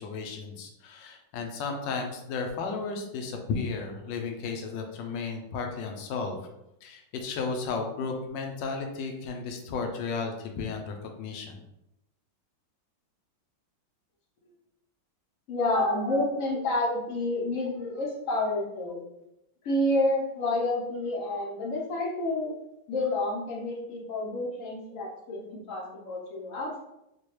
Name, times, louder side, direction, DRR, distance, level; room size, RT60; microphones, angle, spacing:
voice 1, 0.0-6.4 6.8-11.6, left 4 dB, 75° left, 3 dB, 1.3 m, -34 dB
voice 2, 15.5-19.0 19.6-22.5 22.9-26.8, left 2 dB, 60° left, -2 dB, 0.9 m, -29 dB
4.2 x 2.2 x 3.1 m, 0.87 s
omnidirectional pair, 2.1 m